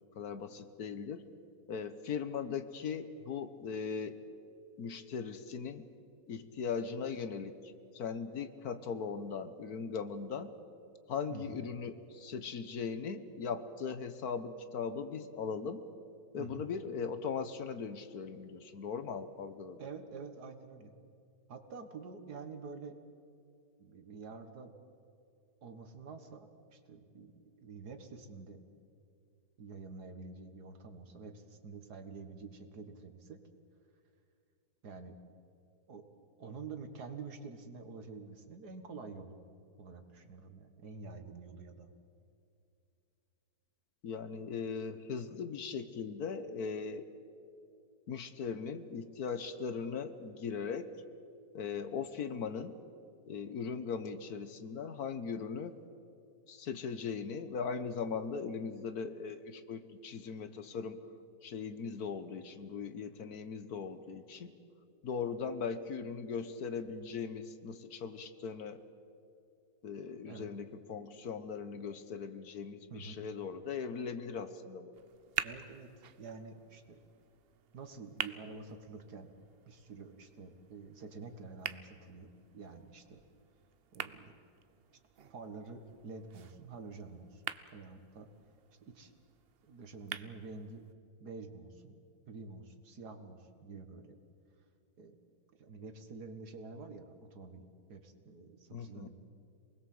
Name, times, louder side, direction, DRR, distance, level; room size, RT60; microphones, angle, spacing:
voice 1, 0.2-1.3 1.7-4.2 4.8-5.9 6.3-10.5 11.1-15.9 16.3-19.8 44.0-47.1 48.1-50.9 51.5-52.8 53.3-55.8 56.5-61.0 61.4-64.5 65.0-68.8 69.8-74.9 98.7-99.1, left 6 dB, 65° left, 11 dB, 1.5 m, -39 dB
voice 2, 11.3-11.6 16.4-16.7 19.8-20.9 21.5-23.0 23.8-24.7 25.6-28.6 29.6-33.4 34.8-35.1 35.9-36.0 36.4-39.4 39.8-41.9 70.3-70.5 72.9-73.2 75.4-77.0 77.7-79.3 79.7-83.2 83.9-84.4 85.3-87.4 87.7-88.3 88.8-89.1 89.7-90.9 91.2-92.0 92.3-94.2 95.0-95.2 95.6-97.6 97.9-99.1, right 4 dB, 70° right, 7 dB, 2.2 m, -48 dB
sound 1, 74.9-90.9, right 8 dB, 55° right, 0.7 m, -47 dB
27.5 x 20.5 x 7.8 m, 2.5 s
omnidirectional pair, 1.8 m